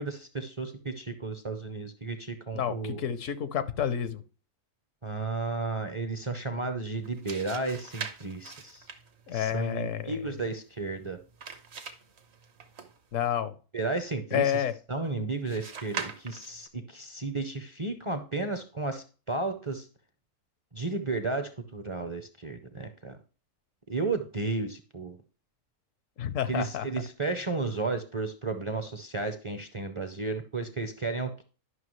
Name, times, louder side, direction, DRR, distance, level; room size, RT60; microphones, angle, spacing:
voice 1, 0.0-3.0 5.0-8.9 9.3-11.2 13.7-14.6 14.9-19.9 20.7-23.2 23.9-25.2 26.5-31.4, right 3 dB, 35° right, 7 dB, 0.6 m, -33 dB
voice 2, 2.5-4.2 9.3-10.2 13.1-13.6 14.3-14.7 26.2-26.9, left 9 dB, 75° left, 13 dB, 1.1 m, -29 dB
sound 1, 6.9-13.3 15.5-16.7, right 6 dB, 60° right, 1.2 m, -43 dB
11.0 x 5.8 x 3.1 m, 0.36 s
omnidirectional pair, 1.3 m